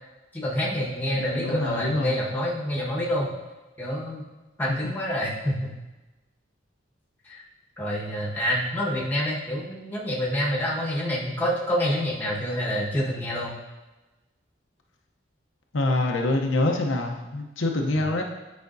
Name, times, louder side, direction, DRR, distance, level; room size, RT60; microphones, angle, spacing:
voice 1, 0.3-3.3 3.8-4.2 4.6-5.7 7.2-7.4 7.8-13.5 17.9-18.0, equal, 10° left, -5 dB, 1.2 m, -27 dB
voice 2, 1.1-2.2 4.7-4.8 15.7-18.2, left 2 dB, 80° left, 2 dB, 0.7 m, -25 dB
9.3 x 5.0 x 2.6 m, 1.1 s
head